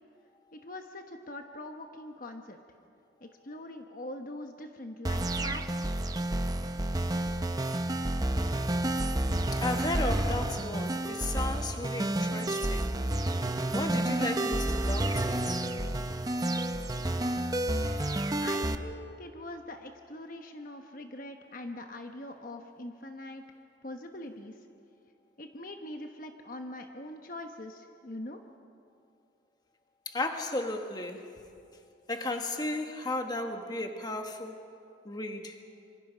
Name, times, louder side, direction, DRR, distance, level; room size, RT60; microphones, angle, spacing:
voice 1, 0.5-2.6 3.2-5.8 18.4-23.4 23.8-24.6 25.4-28.4, left 1 dB, 45° left, 4 dB, 1.1 m, -43 dB
sound 1, 5.1-18.8, right 1 dB, 20° right, 0.6 m, -30 dB
voice 2, 9.5-12.9 13.7-15.6 30.0-31.3 32.1-34.6 35.0-35.5, left 2 dB, 20° left, 4 dB, 1.4 m, -34 dB
26.5 x 24.5 x 5.1 m, 2.5 s
head